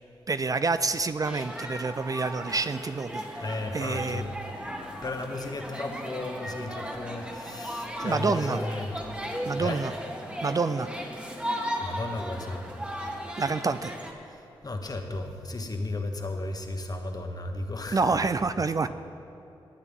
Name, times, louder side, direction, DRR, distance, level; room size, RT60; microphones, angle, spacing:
voice 1, 0.3-3.4 3.7-4.3 8.0-8.6 9.4-9.9 10.4-10.9 13.4-14.0 17.9-18.9, right 4 dB, 35° right, 12 dB, 0.4 m, -27 dB
sound 1, 1.2-14.1, equal, 10° right, 1.5 m, -36 dB
voice 2, 3.4-4.3 5.0-9.1 9.6-9.8 11.7-12.7 14.3-18.3, left 2 dB, 40° left, 4 dB, 1.3 m, -34 dB
19.5 x 8.1 x 3.6 m, 2.8 s
cardioid pair, 55°, 10 cm